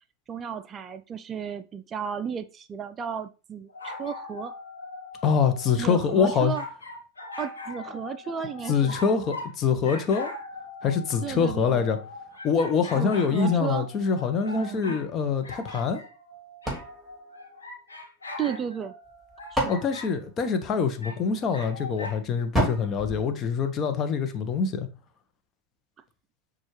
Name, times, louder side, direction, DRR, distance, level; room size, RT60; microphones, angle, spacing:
voice 1, 0.3-4.6 5.8-6.6 7.4-8.9 11.2-11.9 13.0-13.9 14.6-15.0 18.4-18.9 19.5-19.8, right 8 dB, 30° right, 0.3 m, -34 dB
sound 1, 3.7-9.5 9.8-15.1 15.4-20.1 21.0-22.2, left 2 dB, 90° left, 0.9 m, -40 dB
voice 2, 5.2-6.5 8.7-10.3 10.8-12.0 12.4-16.0 19.7-24.9, left 6 dB, 35° left, 0.7 m, -25 dB
sound 2, 16.6-18.2 19.0-21.0 22.5-24.1, right 1 dB, 5° right, 2.5 m, -32 dB
6.2 x 2.4 x 3.1 m
hypercardioid pair, 90°, 0 cm